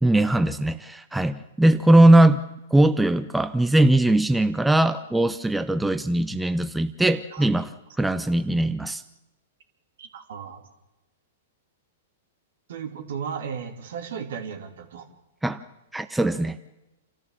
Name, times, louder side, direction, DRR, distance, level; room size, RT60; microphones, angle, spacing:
voice 1, 0.0-2.4 2.7-7.7 8.0-9.0 15.4-15.6 15.9-16.6, right 1 dB, 5° right, 10 dB, 0.7 m, -20 dB
voice 2, 10.0-10.6 12.7-15.1, right 7 dB, 65° right, 5 dB, 2.9 m, -35 dB
28.0 x 13.5 x 7.4 m, 0.99 s
hypercardioid pair, 115°, 0 cm